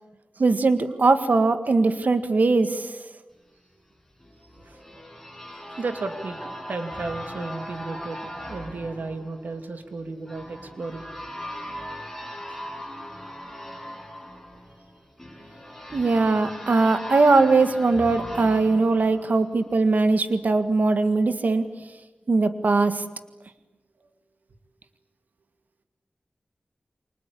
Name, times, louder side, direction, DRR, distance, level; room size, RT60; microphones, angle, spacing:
voice 1, 0.4-2.9 15.9-21.6 22.3-23.0, right 3 dB, 70° right, 10 dB, 1.8 m, -20 dB
sound 1, 4.2-19.9, equal, 5° left, 7.9 m, -39 dB
voice 2, 4.6-5.1 5.8-11.0 12.6-12.7, right 3 dB, 90° right, 7 dB, 2.6 m, -34 dB
29.0 x 24.5 x 8.5 m, 1.1 s
wide cardioid pair, 75°, 3 cm